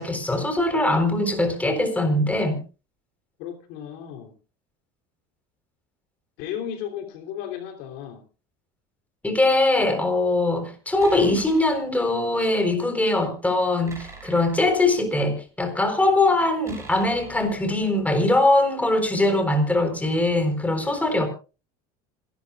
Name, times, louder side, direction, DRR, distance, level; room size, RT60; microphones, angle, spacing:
voice 1, 0.0-2.6 9.2-21.3, left 2 dB, 10° left, 6 dB, 4.0 m, -22 dB
voice 2, 3.4-4.3 6.4-8.2, left 9 dB, 70° left, 4 dB, 3.2 m, -34 dB
sound 1, 11.0-11.9 13.9-15.4 16.6-18.1, right 3 dB, 15° right, 6.1 m, -44 dB
26.5 x 12.0 x 2.4 m, 0.33 s
supercardioid pair, 120°, 19 cm